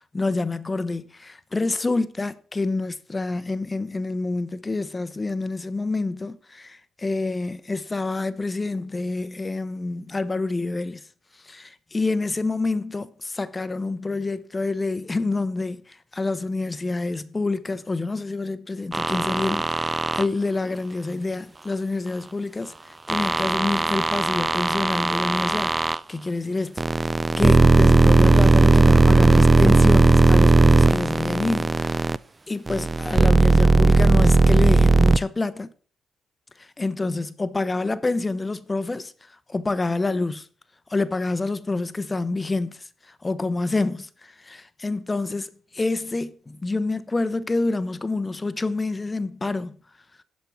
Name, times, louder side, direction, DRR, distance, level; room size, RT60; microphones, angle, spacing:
voice 1, 0.1-11.0 11.4-32.2 32.5-35.7 36.6-40.5 40.9-49.8, left 3 dB, 20° left, 0.7 m, -27 dB
sound 1, 18.9-20.3 23.1-26.0 26.8-32.2 32.7-35.2, right 3 dB, 25° right, 0.4 m, -17 dB
11.5 x 5.2 x 6.1 m
cardioid pair, 90°, 0 cm